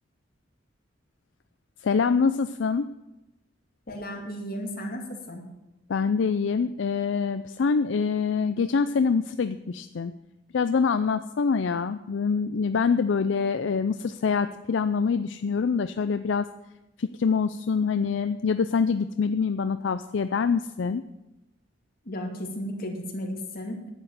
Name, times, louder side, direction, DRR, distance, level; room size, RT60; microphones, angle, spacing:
voice 1, 1.8-2.9 5.9-10.1 10.5-16.5 17.0-21.0, left 5 dB, 75° left, 11 dB, 0.4 m, -25 dB
voice 2, 3.9-5.4 22.0-23.9, equal, 55° left, 1 dB, 2.4 m, -34 dB
11.0 x 7.9 x 7.5 m, 0.97 s
head